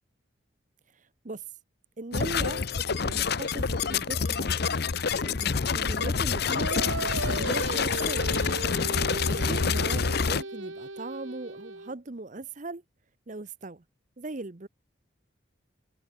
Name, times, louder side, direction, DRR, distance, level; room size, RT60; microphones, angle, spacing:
voice 1, 0.9-1.5 2.0-4.8 5.2-8.3 9.1-12.8 13.3-13.8 14.2-14.7, right 2 dB, 40° right, 0.8 m, -39 dB
sound 1, 2.1-10.4, left 5 dB, 50° left, 0.7 m, -27 dB
Singing, 6.5-11.9, right 3 dB, 70° right, 2.9 m, -36 dB
head